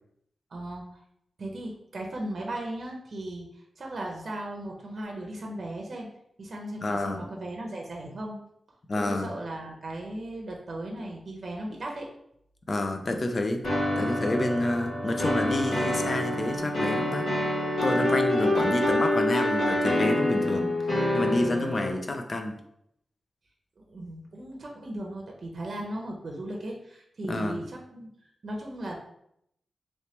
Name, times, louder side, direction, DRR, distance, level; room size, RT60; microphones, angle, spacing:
voice 1, 0.5-1.0 1.4-6.1 6.4-8.4 9.0-12.1 23.8-28.1 28.4-29.0, right 1 dB, 55° right, -1 dB, 0.7 m, -37 dB
voice 2, 6.8-7.3 8.9-9.3 12.7-13.6 14.0-17.3 17.8-20.7 21.1-22.6 27.2-27.6, left 2 dB, 45° left, 5 dB, 0.5 m, -29 dB
sound 1, 13.6-21.9, left 1 dB, 85° left, 1.5 m, -26 dB
3.2 x 3.1 x 2.9 m, 0.74 s
cardioid pair, 80°, 0 cm